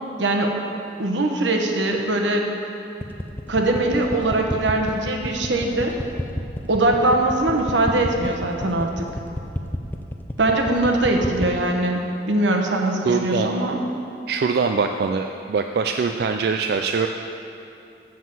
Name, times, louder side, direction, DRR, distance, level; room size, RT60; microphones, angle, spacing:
voice 1, 0.2-0.5 1.0-2.5 3.5-6.0 6.7-9.0 10.4-13.8, right 2 dB, 85° right, 2 dB, 1.0 m, -21 dB
sound 1, 3.0-11.6, left 1 dB, 10° left, 0.4 m, -29 dB
voice 2, 13.0-13.5 14.3-17.1, right 5 dB, 60° right, 5 dB, 0.3 m, -23 dB
7.3 x 6.0 x 7.5 m, 2.7 s
head